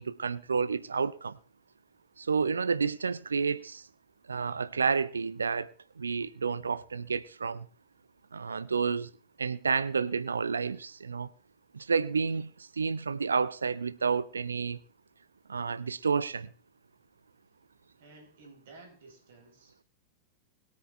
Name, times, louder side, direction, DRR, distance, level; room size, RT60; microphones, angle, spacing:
voice 1, 0.0-1.4 2.2-3.9 4.3-7.7 8.3-9.1 9.4-11.3 11.7-14.8 15.5-16.5, right 5 dB, 75° right, 0.6 m, -30 dB
voice 2, 18.0-19.8, right 3 dB, 55° right, 4.6 m, -54 dB
21.5 x 8.7 x 3.4 m
figure-of-eight pair, 90°, 0 cm